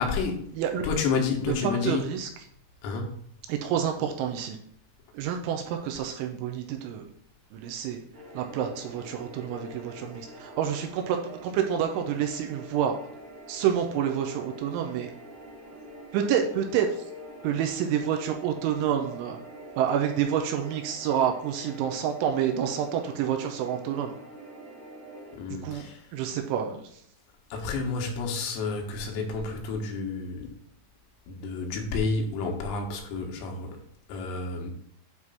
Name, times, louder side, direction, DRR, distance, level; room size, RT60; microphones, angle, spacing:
voice 1, 0.0-2.1 2.8-3.2 25.3-26.1 27.5-30.5 31.3-33.8 34.1-34.7, left 4 dB, 85° left, 4.0 m, -30 dB
voice 2, 0.6-0.9 1.6-2.3 3.5-4.6 5.1-7.1 7.5-8.0 8.3-12.9 13.5-15.1 16.1-17.0 17.4-19.4 19.8-24.1 25.6-27.0, right 9 dB, 80° right, 2.9 m, -28 dB
sound 1, 8.1-25.4, right 1 dB, 50° right, 1.5 m, -45 dB
9.5 x 3.2 x 5.5 m
omnidirectional pair, 5.9 m